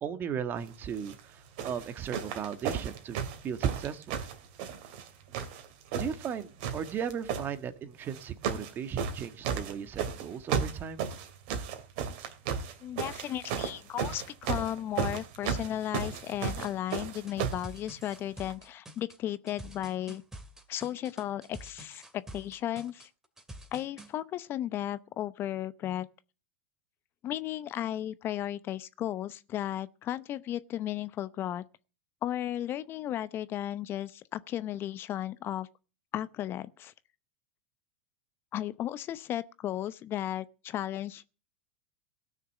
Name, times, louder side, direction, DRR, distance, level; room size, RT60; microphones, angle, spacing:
voice 1, 0.0-3.2 3.4-4.2 6.0-11.0, right 8 dB, 35° right, 1.5 m, -36 dB
sound 1, 0.9-1.2 1.6-5.1 5.3-6.3 6.6-7.5 8.1-8.7 9.0-17.7 18.5-18.6, right 7 dB, 60° right, 2.5 m, -34 dB
voice 2, 12.8-20.2 20.7-23.1 23.7-26.1 27.2-31.6 32.2-35.7 36.1-36.9 38.5-41.2, left 12 dB, 40° left, 0.8 m, -35 dB
sound 2, 16.5-24.1, right 1 dB, 10° right, 2.6 m, -47 dB
17.5 x 6.5 x 7.5 m
hypercardioid pair, 100°, 6 cm